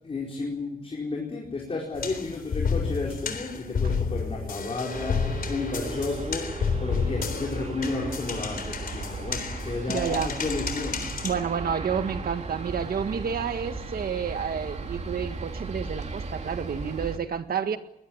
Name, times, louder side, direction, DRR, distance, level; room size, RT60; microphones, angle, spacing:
voice 1, 0.0-11.1, left 3 dB, 40° left, -2 dB, 4.7 m, -32 dB
sound 1, 1.9-11.3, left 5 dB, 75° left, 3.7 m, -31 dB
sound 2, 4.0-11.5, equal, 20° right, 5.6 m, -43 dB
Aircraft, 4.9-17.2, right 3 dB, 50° right, 2.6 m, -36 dB
voice 2, 9.9-10.3 11.2-17.8, right 7 dB, 85° right, 9 dB, 1.8 m, -30 dB
22.5 x 20.5 x 8.8 m, 0.80 s
wide cardioid pair, 180°, 15 cm